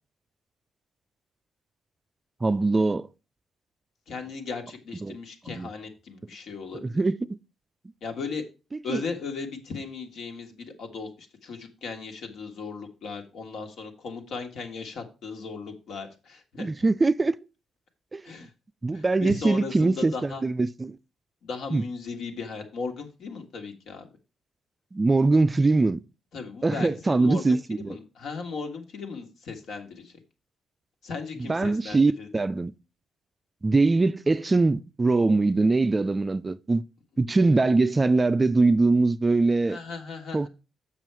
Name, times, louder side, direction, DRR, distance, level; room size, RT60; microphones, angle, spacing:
voice 1, 2.4-3.1 5.0-5.2 5.5-5.7 6.8-7.4 8.9-9.0 16.6-17.4 18.1-18.2 18.8-21.0 21.7-21.8 24.9-26.0 26.6-28.0 31.4-32.7 33.6-36.8 37.2-39.8 40.3-40.5, right 3 dB, 20° right, 0.3 m, -22 dB
voice 2, 4.1-7.0 8.0-8.4 8.8-16.6 18.2-18.5 18.9-20.4 21.4-24.1 26.3-30.1 31.0-32.3 39.7-40.5, left 4 dB, 70° left, 1.7 m, -37 dB
7.5 x 6.2 x 4.6 m
cardioid pair, 120°, 0 cm